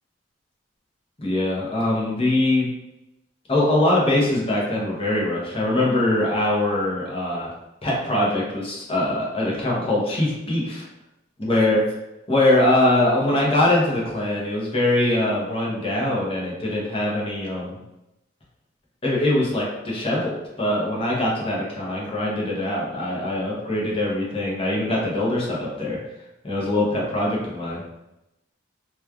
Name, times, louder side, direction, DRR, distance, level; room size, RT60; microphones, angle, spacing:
voice 1, 1.2-2.7 3.5-7.5 7.8-10.8 11.4-11.8 12.3-17.8 19.0-26.0 26.4-27.8, left 1 dB, 30° left, -4 dB, 0.7 m, -22 dB
3.0 x 2.3 x 2.2 m, 0.92 s
head